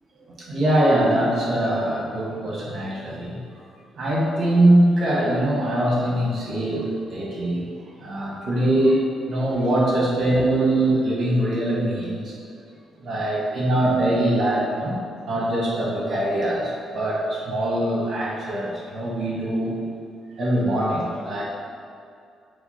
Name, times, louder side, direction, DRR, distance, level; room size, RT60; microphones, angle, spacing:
voice 1, 0.5-3.4 4.0-7.6 8.0-12.3 13.0-15.0 15.3-19.7 20.4-21.4, right 1 dB, 55° right, -5 dB, 1.3 m, -22 dB
5.6 x 2.1 x 4.3 m, 2.5 s
cardioid pair, 90°, 0 cm